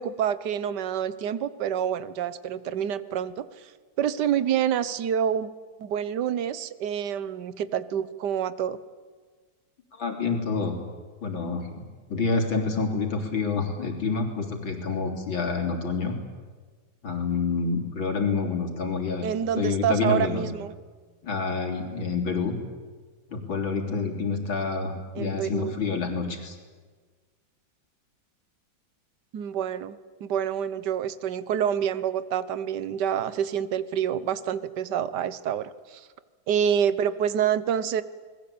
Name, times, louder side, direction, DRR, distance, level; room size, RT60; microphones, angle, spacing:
voice 1, 0.0-3.7 4.0-5.5 5.8-8.8 19.2-20.7 25.1-25.7 29.3-36.1 36.5-38.0, right 9 dB, 65° right, 15 dB, 1.6 m, -27 dB
voice 2, 10.0-10.8 11.2-16.2 17.0-20.5 21.2-22.6 23.3-26.6, left 4 dB, 85° left, 2 dB, 4.3 m, -28 dB
28.5 x 21.0 x 8.6 m, 1.5 s
omnidirectional pair, 2.1 m